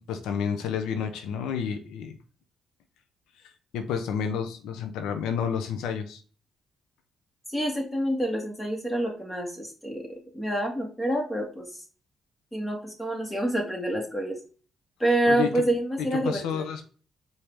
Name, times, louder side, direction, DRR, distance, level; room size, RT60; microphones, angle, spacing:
voice 1, 0.0-2.1 3.7-6.2 15.3-15.6 16.0-16.8, left 7 dB, 90° left, 7 dB, 0.6 m, -30 dB
voice 2, 7.5-11.8 12.5-14.4 15.0-16.7, right 1 dB, 10° left, 0 dB, 1.8 m, -27 dB
4.8 x 2.7 x 3.4 m, 0.39 s
cardioid pair, 90°, 0 cm